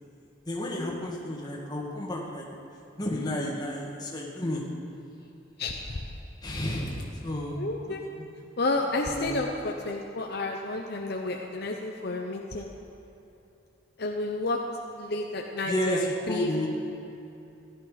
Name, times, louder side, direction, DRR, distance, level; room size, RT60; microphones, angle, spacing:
voice 1, 0.5-2.5 3.0-4.6 6.4-7.6 7.9-8.0 9.1-9.3 15.6-16.7, left 1 dB, 20° left, -2 dB, 1.7 m, -31 dB
voice 2, 5.6-6.1 7.6-8.0 8.6-12.7 14.0-14.6 15.0-16.5, left 2 dB, 55° left, 1 dB, 0.8 m, -31 dB
15.5 x 11.0 x 5.0 m, 2.9 s
head